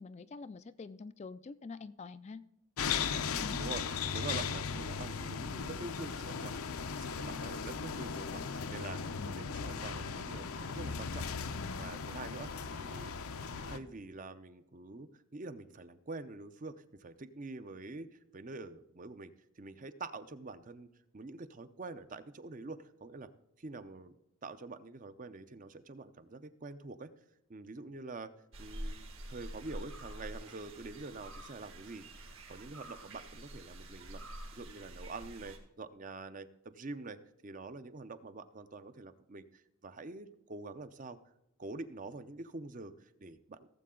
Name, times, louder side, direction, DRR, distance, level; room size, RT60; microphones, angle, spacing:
voice 1, 0.0-2.4 3.4-3.6 9.2-9.5, left 4 dB, 30° left, 0.3 m, -46 dB
sound 1, 2.8-13.8, left 6 dB, 80° left, 0.7 m, -37 dB
voice 2, 4.1-11.3 11.8-13.1 13.7-20.9 21.1-23.3 23.6-24.2 24.4-27.1 27.5-28.3 28.6-34.2 34.5-41.2 41.6-43.7, right 3 dB, 35° right, 0.6 m, -46 dB
sound 2, 28.5-35.6, right 1 dB, 65° right, 2.1 m, -47 dB
17.0 x 7.6 x 3.8 m
head